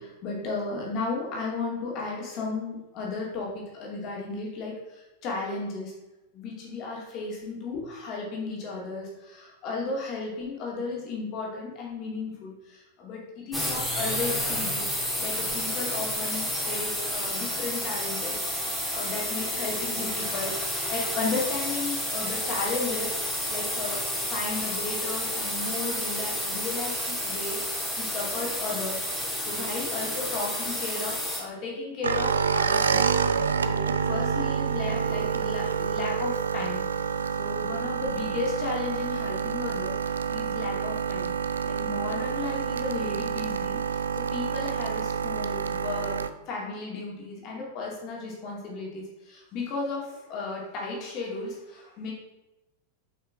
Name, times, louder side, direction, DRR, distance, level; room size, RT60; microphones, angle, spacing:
voice 1, 0.0-5.9 6.3-29.0 29.4-36.8 37.1-40.0 40.3-41.3 41.6-52.1, left 3 dB, 40° left, -3 dB, 2.5 m, -34 dB
sound 1, 13.5-31.4, left 1 dB, 5° left, 2.0 m, -30 dB
sound 2, 32.0-46.3, right 6 dB, 70° right, 0.4 m, -28 dB
7.8 x 5.6 x 3.5 m, 1.0 s
figure-of-eight pair, 90°, 0 cm